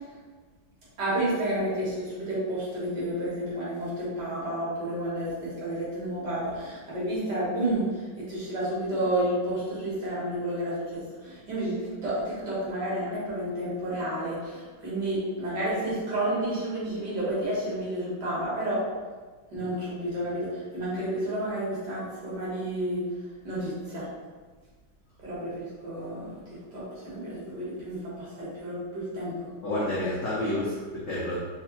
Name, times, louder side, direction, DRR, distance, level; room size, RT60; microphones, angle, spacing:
voice 1, 1.0-18.9 19.5-23.0 23.4-24.1 25.2-29.5, right 1 dB, 60° right, -8 dB, 1.8 m, -31 dB
voice 2, 29.6-31.4, left 1 dB, 75° left, -7 dB, 0.7 m, -29 dB
3.8 x 2.8 x 2.9 m, 1.3 s
omnidirectional pair, 2.2 m